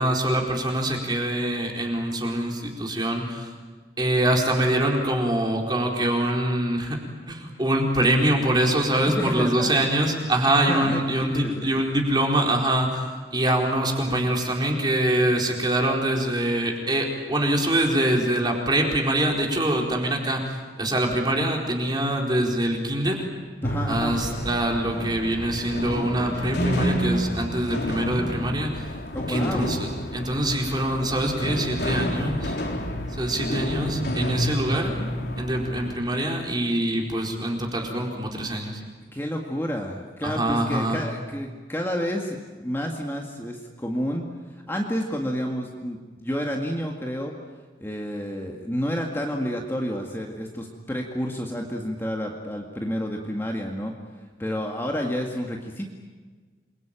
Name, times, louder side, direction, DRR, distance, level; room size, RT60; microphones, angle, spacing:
voice 1, 0.0-3.5 4.0-7.0 7.3-23.2 23.9-28.9 29.3-32.6 33.2-34.9 35.4-38.8 40.2-41.0, right 1 dB, 25° right, 1 dB, 4.5 m, -24 dB
voice 2, 9.0-9.8 10.5-11.7 23.6-24.1 29.1-29.8 39.1-44.3 44.7-47.3 47.8-53.9 54.4-55.9, equal, 15° left, 0 dB, 2.0 m, -30 dB
sound 1, 23.6-35.9, equal, 70° left, 3.7 m, -29 dB
28.0 x 22.5 x 9.0 m, 1.4 s
head